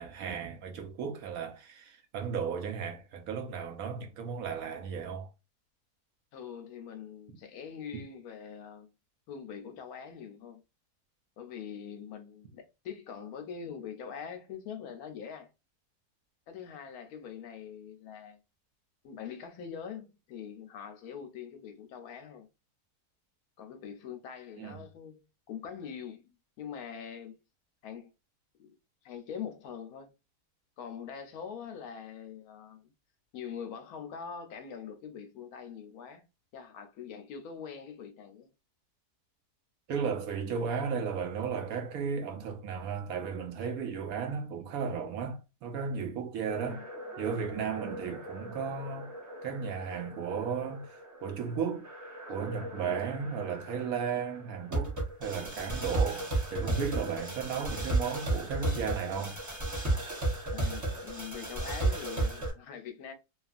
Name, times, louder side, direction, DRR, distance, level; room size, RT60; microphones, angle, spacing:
voice 1, 0.0-5.3 24.6-24.9 39.9-46.8 47.2-49.1 49.4-51.9 52.3-59.4, right 6 dB, 70° right, 1.0 m, -35 dB
voice 2, 6.3-8.9 9.3-10.6 11.4-15.5 16.5-18.4 19.0-22.5 23.6-27.4 27.8-28.1 28.6-28.7 29.0-30.1 30.8-32.9 33.3-36.2 36.5-38.5 46.5-46.9 52.6-52.9 60.5-63.1, left 7 dB, 75° left, 1.0 m, -43 dB
sound 1, 46.5-62.5, right 2 dB, 15° right, 0.6 m, -35 dB
2.8 x 2.4 x 2.4 m
omnidirectional pair, 1.7 m